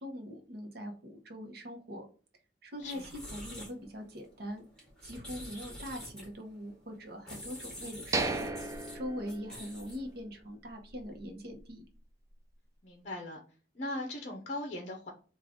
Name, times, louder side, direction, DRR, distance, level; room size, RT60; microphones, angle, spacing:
voice 1, 0.0-2.1 2.6-4.6 5.0-11.8, equal, 65° right, 3 dB, 0.9 m, -42 dB
sound 1, 2.7-10.2, left 1 dB, 5° left, 1.8 m, -48 dB
sound 2, 8.1-10.1 10.4-10.5 11.0-11.2, right 3 dB, 20° right, 0.4 m, -35 dB
voice 2, 12.8-13.4 13.8-15.1, left 1 dB, 40° left, 1 dB, 0.6 m, -39 dB
3.6 x 2.4 x 3.6 m, 0.39 s
head